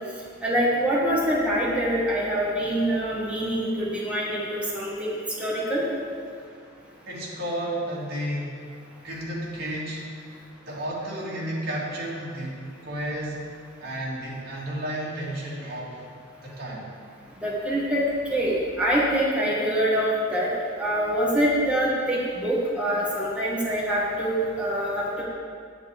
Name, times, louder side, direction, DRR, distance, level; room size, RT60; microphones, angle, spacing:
voice 1, 0.4-5.8 17.4-18.0 18.3-20.5 20.8-25.2, right 1 dB, 5° right, -7 dB, 2.1 m, -25 dB
voice 2, 7.1-8.5 9.0-10.1 10.6-13.5 13.8-16.0 16.4-16.9, right 1 dB, 55° right, -6 dB, 2.9 m, -32 dB
9.8 x 8.2 x 5.0 m, 2.3 s
head